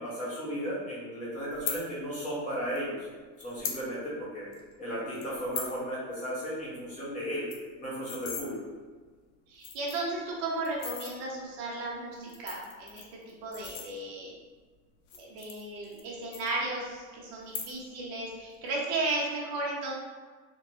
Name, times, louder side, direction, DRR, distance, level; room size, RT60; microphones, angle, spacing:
voice 1, 0.0-2.9 3.4-4.5 4.8-7.5 7.8-8.6, equal, 20° left, -8 dB, 1.2 m, -35 dB
sound 1, 1.5-1.8 2.8-2.9 3.4-3.8 4.2-4.3 4.5-4.7 5.2-5.8 6.1-6.3 6.6-6.7 7.0-7.1 7.3-8.5 9.1-9.2 9.5-10.1 10.6-11.1 12.1-14.3 15.0-16.1 16.3-17.0 17.4-18.0 18.3-18.7, left 6 dB, 55° left, 0.7 m, -39 dB
voice 2, 9.5-14.3 15.1-20.0, right 2 dB, 35° right, -3 dB, 1.0 m, -35 dB
4.3 x 3.1 x 3.0 m, 1.5 s
supercardioid pair, 160°, 42 cm